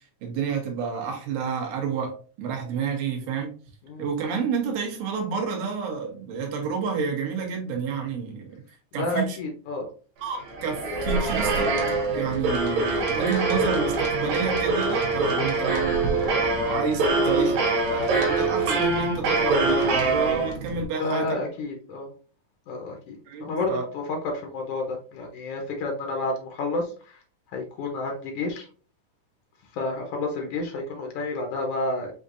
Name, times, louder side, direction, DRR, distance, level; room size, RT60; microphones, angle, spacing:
voice 1, 0.2-3.5 4.0-8.6 8.9-9.4 10.2-11.7 12.1-21.4 23.3-23.8, right 5 dB, 85° right, 2.6 m, -29 dB
voice 2, 8.9-9.9 17.1-17.2 21.0-22.1 22.7-27.2 27.5-28.7 29.7-32.1, left 2 dB, 90° left, 1.3 m, -30 dB
sound 1, 10.4-20.8, right 3 dB, 70° right, 1.9 m, -24 dB
6.4 x 2.6 x 2.5 m
omnidirectional pair, 3.7 m